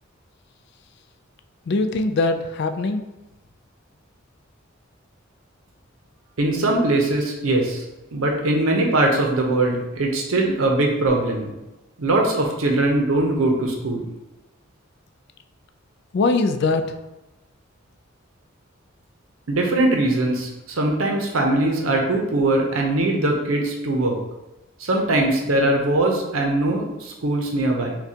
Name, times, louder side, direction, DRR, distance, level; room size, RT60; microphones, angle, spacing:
voice 1, 1.7-3.0 16.1-17.0, left 3 dB, 55° left, 8 dB, 0.3 m, -21 dB
voice 2, 6.4-7.8 8.1-11.5 12.0-14.1 19.5-24.2 24.8-28.0, right 2 dB, 90° right, 1 dB, 0.7 m, -21 dB
5.8 x 2.3 x 2.8 m, 1.0 s
head